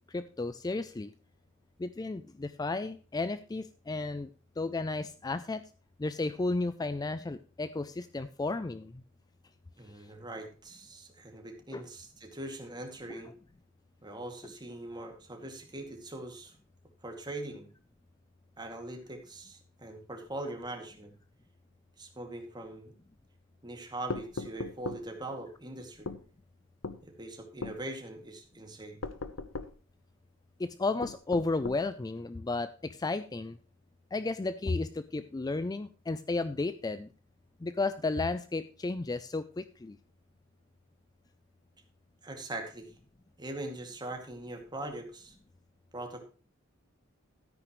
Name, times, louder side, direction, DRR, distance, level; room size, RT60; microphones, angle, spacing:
voice 1, 0.1-1.1 1.8-4.3 4.6-5.6 6.0-9.0 11.7-11.8 13.1-13.2 30.6-33.6 34.1-37.1 37.6-40.0, left 3 dB, 20° left, 13 dB, 0.4 m, -33 dB
voice 2, 9.8-13.3 14.0-16.5 17.0-17.7 18.6-21.1 22.0-22.9 23.6-26.1 27.0-29.0 42.2-42.9 43.4-45.4 45.9-46.2, right 1 dB, 20° right, 3 dB, 2.2 m, -42 dB
sound 1, 24.1-25.0 26.0-26.2 26.8-27.0 27.6-27.8 29.0-29.7 31.0-31.8, left 3 dB, 90° left, 0.9 m, -38 dB
13.0 x 9.9 x 3.1 m, 0.38 s
head